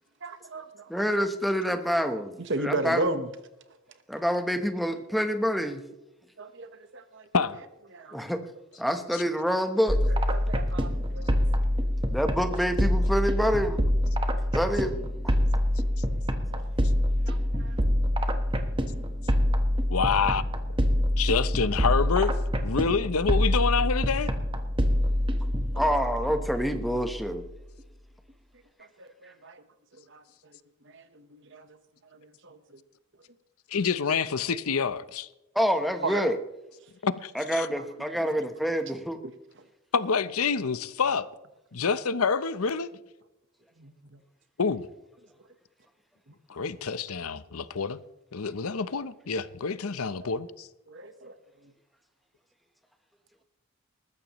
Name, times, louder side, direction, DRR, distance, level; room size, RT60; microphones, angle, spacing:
voice 1, 0.2-1.0 2.5-3.3 6.4-6.7 6.9-7.2 7.9-8.2 10.3-11.4 16.5-16.6 17.3-17.8 29.0-29.6 30.1-30.2 30.9-31.7 32.1-32.8 36.0-36.3 38.2-38.4 43.8-43.9 50.2-50.3 50.9-51.4, right 2 dB, 55° right, 1.2 m, -35 dB
voice 2, 0.9-3.2 4.1-5.8 8.1-8.4 8.8-10.0 12.1-13.8 14.5-14.9 15.2-15.3 25.7-27.5 35.5-36.4 37.3-39.2, equal, ahead, 1.0 m, -27 dB
sound 1, 9.9-27.5, equal, 25° right, 1.2 m, -26 dB
voice 3, 19.9-20.4 21.2-22.3 22.6-24.3 33.7-35.3 37.0-37.7 39.9-41.3 41.7-42.9 44.6-44.9 46.5-48.0 48.3-50.7, left 5 dB, 80° left, 0.7 m, -27 dB
20.0 x 14.5 x 3.1 m
head